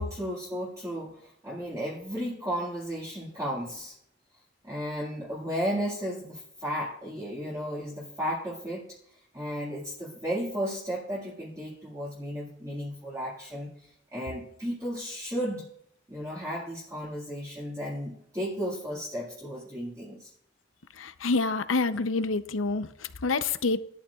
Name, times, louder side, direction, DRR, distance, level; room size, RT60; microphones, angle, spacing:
voice 1, 0.0-4.0 4.6-9.0 9.3-15.7 16.1-20.3, equal, 15° right, 1.9 m, -34 dB
voice 2, 21.0-23.8, left 3 dB, 85° left, 0.7 m, -27 dB
17.0 x 12.0 x 2.4 m
head